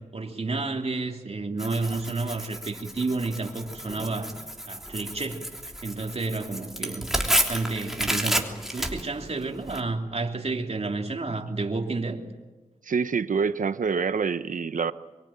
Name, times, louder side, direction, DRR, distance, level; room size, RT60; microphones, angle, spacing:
voice 1, 0.1-4.3 4.7-5.5 5.8-12.2, right 3 dB, 50° right, 2 dB, 3.1 m, -31 dB
Tearing, 1.6-9.8, right 1 dB, 5° right, 3.1 m, -31 dB
voice 2, 12.8-14.9, right 5 dB, 70° right, 12 dB, 1.0 m, -26 dB
24.0 x 24.0 x 8.9 m, 1.2 s
wide cardioid pair, 75°, 14 cm